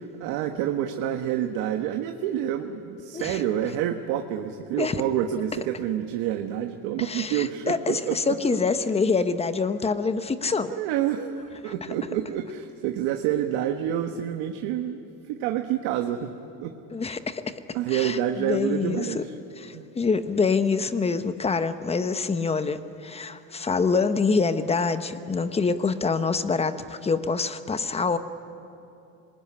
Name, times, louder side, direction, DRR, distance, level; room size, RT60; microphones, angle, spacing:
voice 1, 0.0-8.4 10.6-15.0 15.3-16.3 16.6-16.7 17.7-19.3 19.7-19.9, right 10 dB, 70° right, 5 dB, 1.5 m, -28 dB
voice 2, 7.0-10.7 11.6-11.7 16.9-17.5 17.9-19.2 19.6-28.2, left 4 dB, 15° left, 11 dB, 1.0 m, -26 dB
26.0 x 20.5 x 9.9 m, 2.9 s
cardioid pair, 140°, 38 cm